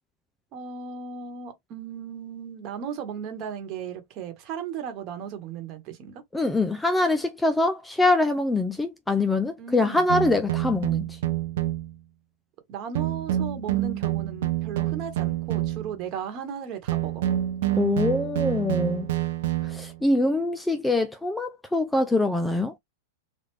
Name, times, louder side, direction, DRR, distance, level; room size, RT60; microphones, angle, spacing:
voice 1, 0.5-6.2 9.6-10.1 12.7-17.2, right 7 dB, 35° right, 1.2 m, -36 dB
voice 2, 6.3-11.0 17.8-19.1 19.7-22.7, left 2 dB, 5° left, 0.3 m, -24 dB
sound 1, 10.1-12.0 13.0-16.1 16.9-20.0, right 14 dB, 65° right, 0.7 m, -27 dB
3.3 x 2.3 x 3.1 m
supercardioid pair, 145°, 0 cm